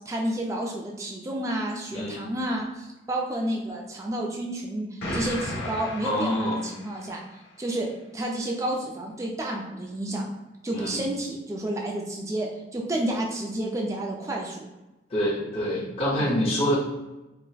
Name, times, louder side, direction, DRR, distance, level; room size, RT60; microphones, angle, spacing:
voice 1, 0.1-7.2 7.6-10.2 10.6-14.7 16.2-16.4, right 1 dB, 15° right, 0 dB, 0.3 m, -30 dB
voice 2, 1.9-2.2 6.0-6.6 10.7-11.0 15.1-16.8, equal, 30° left, -7 dB, 0.6 m, -26 dB
Explosion, 5.0-7.2, left 1 dB, 75° left, 0.9 m, -34 dB
3.9 x 2.0 x 2.3 m, 1.0 s
head